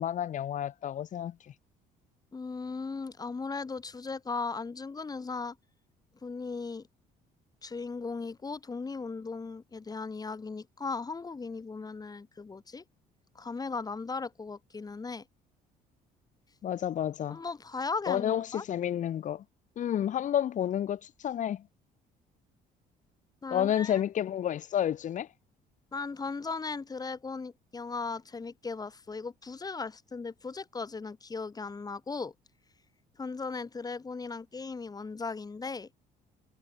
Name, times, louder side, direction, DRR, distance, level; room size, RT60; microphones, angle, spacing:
voice 1, 0.0-1.3 16.6-17.4 18.1-19.4 19.8-21.6 23.5-25.3, left 10 dB, 50° left, 0.9 m, -30 dB
voice 2, 2.3-5.6 6.2-6.9 7.6-12.8 13.4-15.2 17.3-18.6 23.4-24.0 25.9-32.3 33.2-35.9, left 4 dB, 20° left, 2.1 m, -37 dB
cardioid pair, 110°, 17 cm